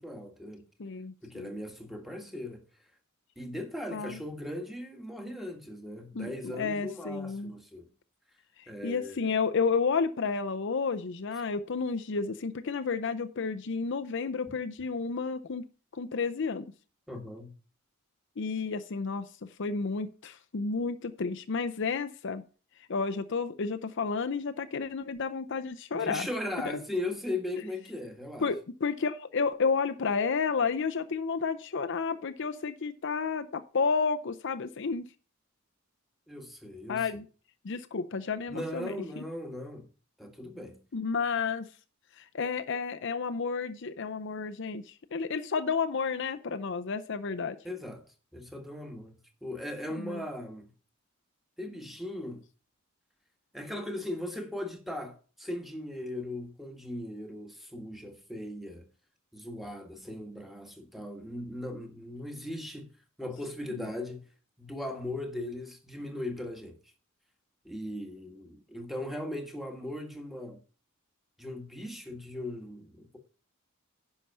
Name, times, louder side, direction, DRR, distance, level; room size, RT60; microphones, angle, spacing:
voice 1, 0.0-0.6 1.2-2.6 3.4-7.9 8.7-9.3 17.1-17.5 25.9-28.5 36.3-37.1 38.5-39.8 40.2-40.8 47.6-48.0 48.3-49.2 49.4-50.7 51.6-52.4 53.5-58.9 59.3-62.9 63.2-64.2 64.6-66.8 67.6-70.6 71.4-73.2, left 1 dB, ahead, 1.5 m, -38 dB
voice 2, 0.8-1.5 3.9-4.2 6.1-7.5 8.6-15.6 15.9-16.7 18.4-19.3 19.6-22.4 22.9-26.3 28.4-35.1 36.9-37.2 37.6-39.2 40.9-41.7 42.2-47.6 50.0-50.2 63.7-63.9, left 5 dB, 60° left, 0.6 m, -31 dB
10.0 x 5.8 x 5.5 m
head